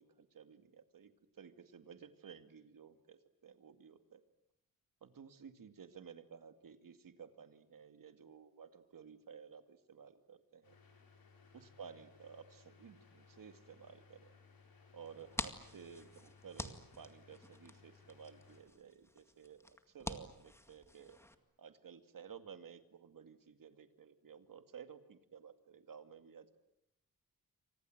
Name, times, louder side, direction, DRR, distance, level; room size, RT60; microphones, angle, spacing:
voice 1, 0.0-4.2 5.0-10.7 11.5-14.3 14.9-21.2 21.6-26.6, right 7 dB, 70° right, 9 dB, 2.3 m, -55 dB
sound 1, 10.6-18.6, left 5 dB, 85° left, 6.8 m, -63 dB
sound 2, 15.0-21.3, left 1 dB, 5° left, 2.1 m, -48 dB
29.0 x 25.5 x 7.9 m, 0.81 s
wide cardioid pair, 140°, 34 cm